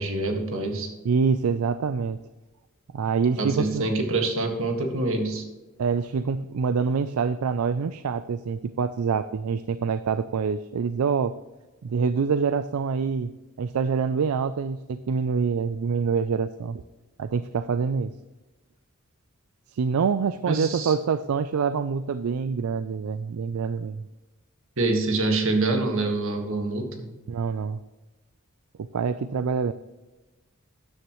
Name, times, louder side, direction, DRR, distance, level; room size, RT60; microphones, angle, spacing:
voice 1, 0.0-0.9 3.4-5.5 20.5-20.9 24.8-27.1, right 2 dB, 65° right, 3 dB, 1.8 m, -26 dB
voice 2, 1.0-2.2 2.9-3.9 5.8-11.3 11.8-13.3 13.6-16.8 17.2-18.1 19.7-24.0 27.3-27.8 28.9-29.7, right 5 dB, 80° right, 13 dB, 0.4 m, -26 dB
13.0 x 9.7 x 3.1 m, 1.1 s
head